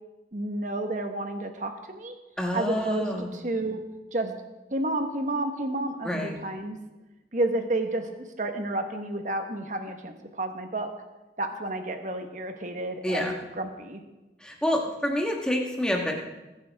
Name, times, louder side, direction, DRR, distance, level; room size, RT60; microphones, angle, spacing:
voice 1, 0.3-2.2 2.5-3.8 4.1-4.3 4.7-6.8 7.3-8.1 8.4-10.9 11.4-14.0, right 2 dB, 45° right, 6 dB, 1.3 m, -31 dB
voice 2, 2.4-3.4 6.0-6.4 13.0-13.3 14.4-16.1, left 1 dB, 5° left, 0 dB, 1.5 m, -27 dB
21.5 x 9.6 x 3.6 m, 1.1 s
head